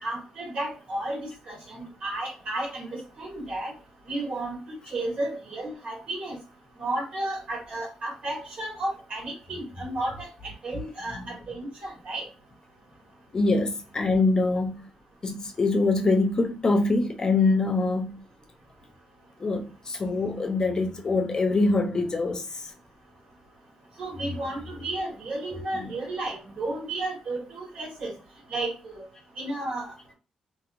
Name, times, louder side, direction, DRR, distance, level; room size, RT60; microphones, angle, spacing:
voice 1, 0.0-3.7 4.1-4.6 4.9-6.4 6.8-12.3 24.0-28.1 28.5-29.1 29.4-30.1, right 2 dB, 60° right, 1.7 m, -33 dB
voice 2, 13.3-14.8 15.2-18.2 19.4-22.6 25.5-25.8, left 3 dB, 35° left, 0.6 m, -24 dB
2.8 x 2.7 x 2.5 m
cardioid pair, 85°, 2 cm